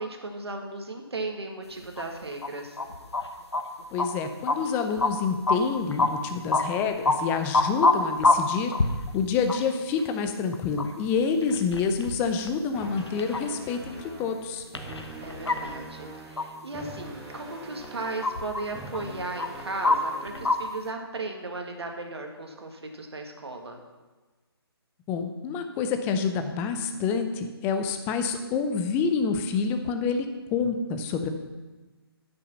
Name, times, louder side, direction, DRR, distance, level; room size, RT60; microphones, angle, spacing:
voice 1, 0.0-2.8 15.2-23.8, right 2 dB, 75° right, 3 dB, 1.7 m, -36 dB
sound 1, 2.0-2.5 2.8-3.3 3.5-4.1 4.5-5.1 5.5-5.6 5.9-6.1 6.5-6.6 7.1-7.2 7.5-9.2 9.5-9.6 10.5-11.1 11.4-12.5 12.8-13.5 13.8-14.0 14.6-15.7 16.4-16.5 17.3-17.4 17.8-18.7 18.9-20.6, left 3 dB, 85° left, 0.9 m, -25 dB
voice 2, 3.9-8.7 9.1-14.6 25.1-30.3 30.5-31.3, left 5 dB, 15° left, 7 dB, 0.6 m, -27 dB
sound 2, 12.7-20.7, right 2 dB, 10° right, 1.1 m, -43 dB
9.5 x 6.2 x 5.9 m, 1.3 s
figure-of-eight pair, 150°, 14 cm